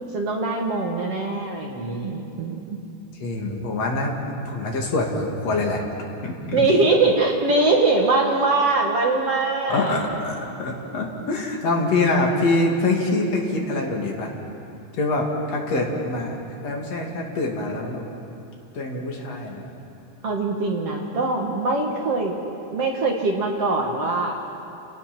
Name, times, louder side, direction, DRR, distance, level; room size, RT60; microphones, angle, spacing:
voice 1, 0.1-2.6 6.5-10.0 20.2-22.4 22.7-24.4, right 3 dB, 55° right, 0 dB, 1.8 m, -22 dB
voice 2, 3.2-5.8 6.2-6.7 9.7-14.3 15.0-16.3 16.6-18.0 18.7-19.7, left 2 dB, 45° left, 0 dB, 3.1 m, -25 dB
29.5 x 18.0 x 6.0 m, 2.8 s
omnidirectional pair, 4.6 m